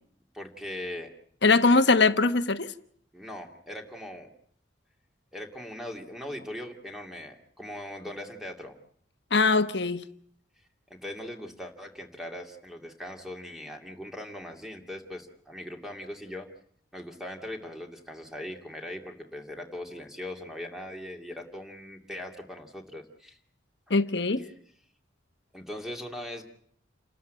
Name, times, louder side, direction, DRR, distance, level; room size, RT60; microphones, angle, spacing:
voice 1, 0.3-1.1 1.7-1.8 3.1-4.3 5.3-8.8 11.0-16.5 16.9-23.4 24.4-24.5 25.5-26.4, left 1 dB, ahead, 2.5 m, -40 dB
voice 2, 1.4-2.7 9.3-10.0 23.9-24.4, left 3 dB, 60° left, 1.2 m, -21 dB
29.0 x 13.5 x 9.2 m
head